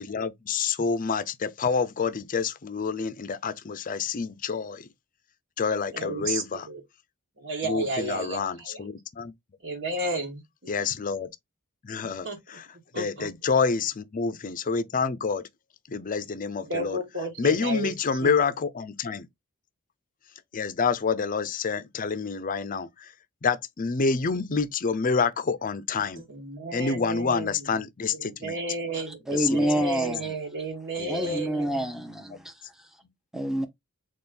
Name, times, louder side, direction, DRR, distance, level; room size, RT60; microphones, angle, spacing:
voice 1, 0.0-4.9 5.6-6.7 7.6-9.3 10.7-11.3 11.8-12.6 13.0-15.4 15.9-17.0 17.4-19.3 20.5-23.1 23.4-26.2 26.7-28.6 29.3-29.7 31.0-31.4, left 5 dB, 40° left, 0.5 m, -28 dB
voice 2, 5.9-6.8 7.4-8.8 9.6-10.7 12.0-12.4 12.9-13.3 16.6-17.9 18.2-18.4 26.2-27.7 28.1-31.9, right 1 dB, 60° right, 1.5 m, -33 dB
voice 3, 29.3-30.3 31.1-32.5 33.3-33.7, right 1 dB, ahead, 0.7 m, -27 dB
4.3 x 3.1 x 3.7 m
head